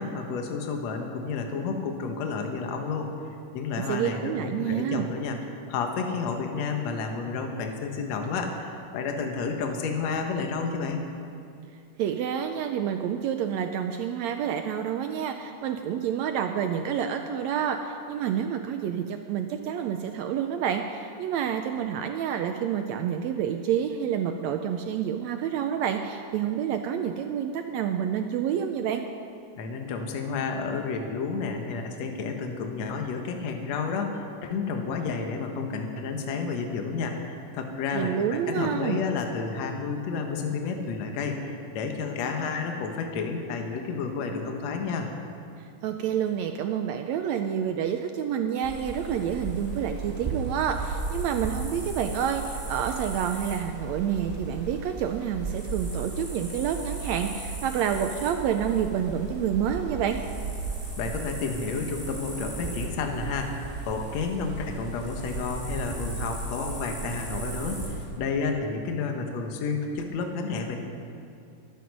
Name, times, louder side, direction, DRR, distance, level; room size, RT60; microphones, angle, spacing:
voice 1, 0.0-3.1 3.5-5.4 5.7-11.1 29.6-45.1 61.0-70.8, left 4 dB, 65° left, 3 dB, 2.3 m, -31 dB
voice 2, 3.8-5.1 12.0-29.0 37.9-39.0 45.8-60.2, right 8 dB, 80° right, 6 dB, 1.7 m, -28 dB
sound 1, 48.6-68.1, right 3 dB, 5° right, 3.7 m, -35 dB
22.5 x 9.5 x 5.3 m, 2.5 s
omnidirectional pair, 3.6 m